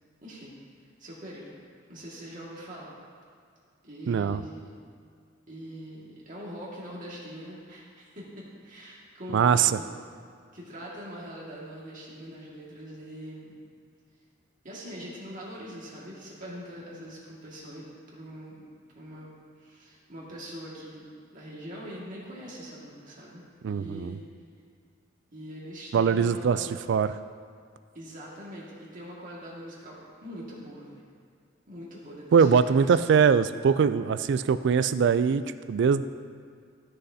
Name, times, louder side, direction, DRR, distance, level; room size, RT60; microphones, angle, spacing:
voice 1, 0.2-0.5 1.0-1.6 1.9-2.9 3.8-4.7 5.5-8.3 8.6-9.9 10.5-13.6 14.6-18.7 19.0-19.3 19.6-24.3 25.3-26.8 27.9-31.0 31.7-33.0, equal, 45° right, -5 dB, 2.0 m, -42 dB
voice 2, 4.1-4.4 9.3-9.7 23.6-24.2 25.9-26.6 26.9-27.1 32.3-36.0, right 6 dB, 65° right, 13 dB, 0.3 m, -22 dB
13.5 x 6.6 x 2.8 m, 2.1 s
head